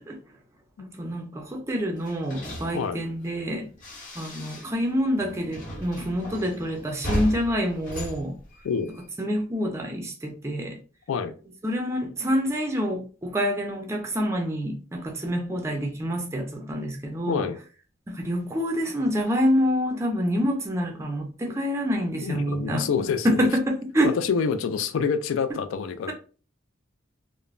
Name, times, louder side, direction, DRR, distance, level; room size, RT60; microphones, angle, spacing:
voice 1, 0.8-3.7 4.2-8.4 9.2-10.8 11.6-17.4 18.1-22.9 23.2-24.1, equal, 15° right, 0.4 m, -27 dB
sound 1, 2.0-4.9 5.2-9.1, equal, 40° left, 0.8 m, -36 dB
voice 2, 22.2-23.5 24.0-26.1, left 6 dB, 75° left, 0.3 m, -27 dB
3.1 x 2.0 x 2.3 m
head